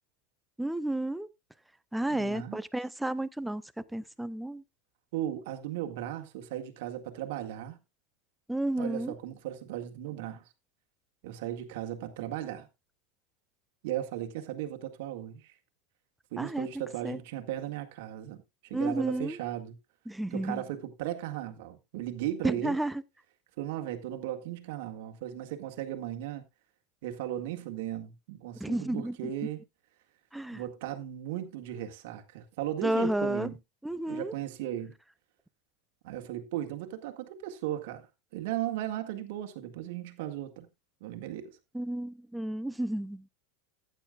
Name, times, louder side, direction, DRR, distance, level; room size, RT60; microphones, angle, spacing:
voice 1, 0.6-1.3 1.9-3.6 3.9-4.6 8.5-9.1 16.4-16.7 17.0-17.2 18.7-19.4 20.1-20.6 22.4-23.0 28.6-29.2 30.3-30.6 32.8-33.5 33.8-34.3 41.7-43.2, right 1 dB, 5° right, 0.5 m, -31 dB
voice 2, 2.1-2.6 5.1-7.8 8.8-10.5 11.2-12.7 13.8-15.5 16.3-19.8 20.3-22.8 23.6-26.4 27.0-29.6 30.5-33.6 34.1-34.9 36.0-38.1 38.3-40.7 41.0-41.6, right 12 dB, 60° right, 1.9 m, -36 dB
14.5 x 9.3 x 2.4 m
supercardioid pair, 165°, 0 cm